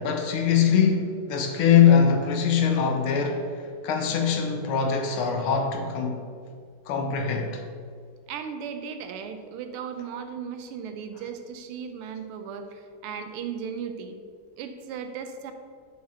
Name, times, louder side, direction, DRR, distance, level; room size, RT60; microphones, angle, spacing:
voice 1, 0.0-6.4 6.9-7.6, left 7 dB, 85° left, 1.7 m, -22 dB
voice 2, 8.3-14.2 14.6-15.5, right 7 dB, 85° right, 1.6 m, -36 dB
6.3 x 4.2 x 5.5 m
omnidirectional pair, 2.4 m